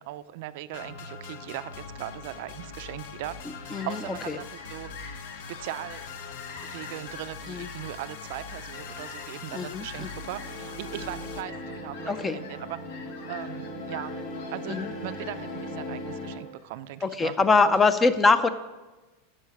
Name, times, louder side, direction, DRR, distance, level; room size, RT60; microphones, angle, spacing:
voice 1, 0.0-4.9 5.5-6.0 6.6-12.8 13.3-14.2 14.5-17.4 17.6-17.9, right 14 dB, 55° right, 13 dB, 0.4 m, -39 dB
sound 1, 0.7-11.4, left 5 dB, 65° left, 0.9 m, -42 dB
Fowl, 3.2-17.1, left 4 dB, 80° left, 1.9 m, -47 dB
voice 2, 9.5-10.1 12.1-12.4 14.7-14.9 17.0-18.5, left 4 dB, 15° left, 13 dB, 0.4 m, -23 dB
sound 2, 10.1-16.4, left 1 dB, 50° left, 2.1 m, -38 dB
10.5 x 6.4 x 6.3 m, 1.2 s
supercardioid pair, 160°, 0 cm